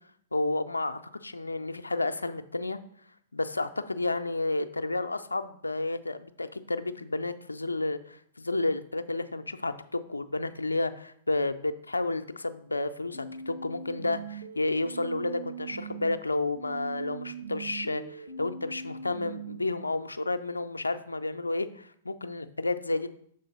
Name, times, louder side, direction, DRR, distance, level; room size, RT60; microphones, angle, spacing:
voice 1, 0.3-2.8 3.3-23.1, left 2 dB, 85° left, 11 dB, 0.4 m, -31 dB
sound 1, 13.1-16.1 16.6-19.6, right 5 dB, 90° right, 0.8 m, -41 dB
6.7 x 3.9 x 5.2 m, 0.65 s
figure-of-eight pair, 105°, 0 cm